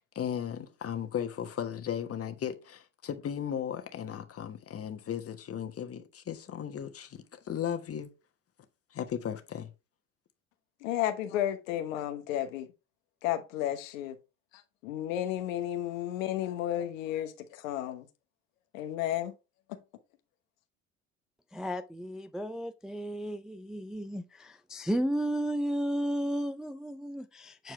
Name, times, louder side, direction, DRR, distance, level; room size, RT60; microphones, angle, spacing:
voice 1, 0.0-8.1 8.9-9.7, left 9 dB, 35° left, 1.4 m, -36 dB
voice 2, 10.8-12.7 13.2-14.2 14.5-18.1 18.7-19.3 19.7-19.8, left 12 dB, 70° left, 1.1 m, -33 dB
voice 3, 21.5-27.7, equal, ahead, 0.4 m, -33 dB
7.9 x 4.6 x 3.3 m
hypercardioid pair, 70°, 40 cm